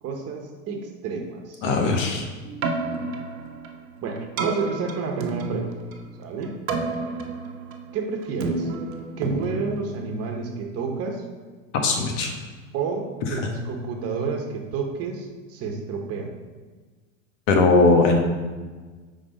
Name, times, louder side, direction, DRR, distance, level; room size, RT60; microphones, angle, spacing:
voice 1, 0.0-1.6 1.9-2.1 4.0-5.8 6.2-6.6 7.9-8.7 9.2-11.3 12.7-16.3, right 5 dB, 35° right, 2 dB, 1.2 m, -30 dB
voice 2, 1.6-2.2 11.8-12.3 13.3-13.4 17.5-18.2, left 3 dB, 65° left, 3 dB, 1.4 m, -19 dB
Keyboard (musical), 2.4-10.6, right 3 dB, 85° right, 1.0 m, -31 dB
5.3 x 4.0 x 5.4 m, 1.4 s
hypercardioid pair, 110°, 40 cm